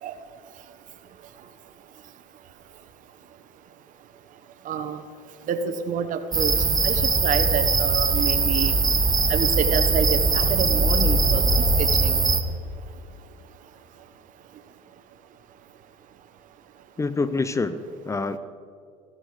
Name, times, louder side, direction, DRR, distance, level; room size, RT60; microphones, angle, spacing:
voice 1, 4.6-5.0 5.5-6.5 6.8-8.8 9.3-12.1, right 8 dB, 55° right, 9 dB, 1.2 m, -28 dB
sound 1, 6.3-12.4, right 3 dB, 25° right, 1.2 m, -21 dB
voice 2, 17.0-18.4, left 3 dB, 20° left, 13 dB, 0.7 m, -26 dB
14.5 x 14.0 x 5.0 m, 2.3 s
supercardioid pair, 90°, 16 cm